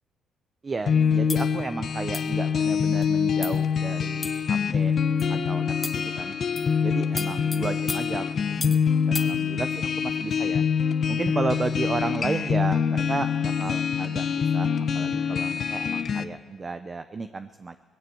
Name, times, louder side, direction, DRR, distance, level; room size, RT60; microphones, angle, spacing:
voice 1, 0.6-4.9 5.3-6.4 6.8-8.3 8.6-10.6 11.1-17.8, right 4 dB, 30° right, 10 dB, 0.7 m, -33 dB
sound 1, 0.9-16.2, left 6 dB, 50° left, 1.0 m, -25 dB
sound 2, 1.3-1.5 2.1-2.4 3.0-3.1 3.4-3.7 4.2-4.6 5.2-5.4 5.8-6.1 6.6-6.8 7.2-8.9 9.1-9.3, left 2 dB, 15° left, 1.3 m, -36 dB
19.5 x 15.5 x 8.6 m, 1.5 s
cardioid pair, 110°, 0 cm